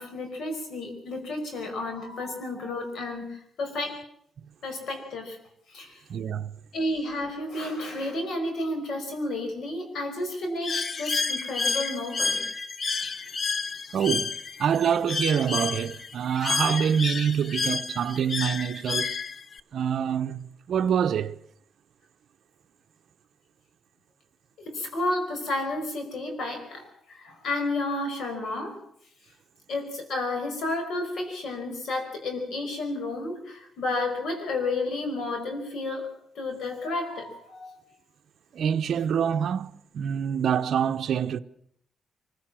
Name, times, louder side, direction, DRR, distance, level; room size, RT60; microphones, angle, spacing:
voice 1, 0.0-4.0 4.6-5.4 5.7-5.9 6.7-12.4 24.6-26.9 27.2-28.8 29.7-36.1 36.4-37.8, left 2 dB, 70° left, 5.3 m, -31 dB
voice 2, 6.1-6.5 13.9-19.2 19.7-21.4 38.5-41.4, right 8 dB, 65° right, 0.8 m, -26 dB
Bird, 10.6-19.6, left 4 dB, 40° left, 0.8 m, -30 dB
24.0 x 16.0 x 7.6 m
cardioid pair, 120°, 0 cm